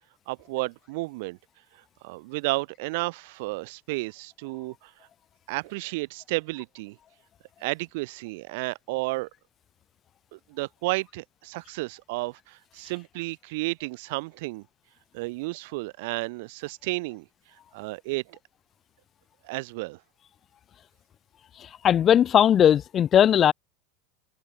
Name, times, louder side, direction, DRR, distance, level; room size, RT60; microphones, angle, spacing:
voice 1, 0.3-1.4 2.0-4.9 5.5-7.0 7.6-9.3 10.3-14.6 15.1-17.3 17.7-18.4 19.4-20.0, right 24 dB, 65° right, 7.0 m, -32 dB
voice 2, 21.6-23.5, left 9 dB, 30° left, 0.3 m, -19 dB
supercardioid pair, 140°, 0 cm